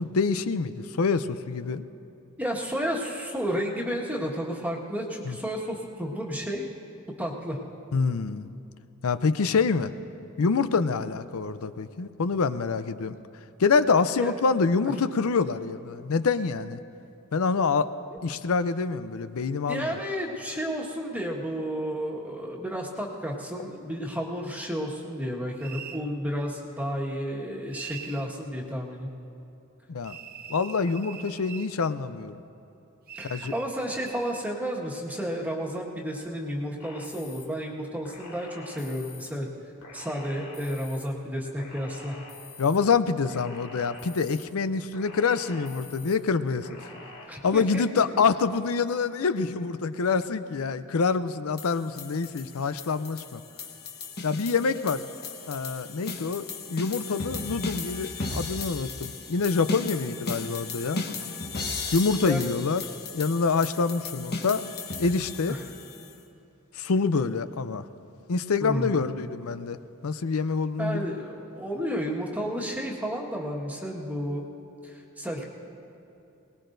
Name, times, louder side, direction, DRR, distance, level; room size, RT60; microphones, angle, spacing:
voice 1, 0.0-1.8 5.3-5.4 7.9-8.5 9.0-9.9 10.4-13.2 13.6-16.8 17.3-17.9 18.2-19.9 29.9-30.2 30.5-32.4 33.2-33.5 42.6-46.9 47.4-53.4 54.2-55.0 55.5-61.1 61.9-62.8 63.1-64.6 65.0-65.6 66.8-67.9 68.3-71.2, left 4 dB, 70° left, 13 dB, 0.5 m, -26 dB
voice 2, 2.4-6.7 7.2-7.6 14.2-14.3 18.1-18.2 19.7-29.1 33.1-39.5 39.9-42.2 47.3-48.0 62.3-62.5 65.5-65.6 68.6-69.0 70.8-74.5 74.8-75.4, equal, 5° right, -3 dB, 1.6 m, -32 dB
sound 1, 25.6-26.1 27.7-28.3 30.0-31.7 33.1-34.5, right 8 dB, 45° right, 0.5 m, -43 dB
sound 2, 36.8-37.5 38.0-39.3 39.8-41.0 41.6-42.8 43.3-44.4 44.9-46.2 46.6-47.3, left 3 dB, 90° left, 2.5 m, -46 dB
sound 3, 51.6-66.1, left 4 dB, 50° left, 1.2 m, -36 dB
22.5 x 19.5 x 2.6 m, 2.8 s
head